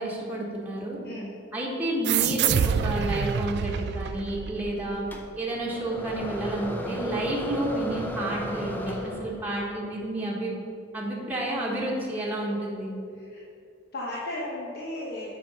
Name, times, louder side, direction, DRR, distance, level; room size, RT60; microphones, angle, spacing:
voice 1, 0.0-1.0 1.5-5.1 5.4-10.5 10.9-12.9, right 1 dB, 10° right, -5 dB, 1.3 m, -30 dB
voice 2, 1.0-1.4 4.7-5.0 13.1-13.4 13.9-15.4, left 1 dB, 50° left, -5 dB, 1.1 m, -36 dB
sound 1, 2.0-5.1, right 7 dB, 55° right, 0.3 m, -27 dB
sound 2, 5.1-9.6, left 1 dB, 10° left, 0.7 m, -35 dB
7.7 x 5.5 x 5.5 m, 2.5 s
head